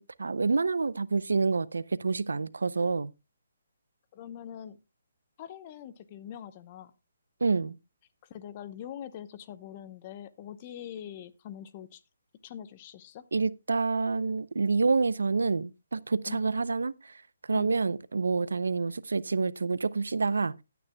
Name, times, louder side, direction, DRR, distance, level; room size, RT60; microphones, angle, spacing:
voice 1, 0.0-3.1 7.4-7.8 13.3-16.9 17.5-20.5, right 4 dB, 90° right, 0.6 m, -28 dB
voice 2, 4.1-4.8 5.4-6.9 8.3-12.0 12.4-13.2 16.3-16.4 17.5-17.7, left 9 dB, 30° left, 0.8 m, -43 dB
15.0 x 9.4 x 2.2 m
hypercardioid pair, 155°, 0 cm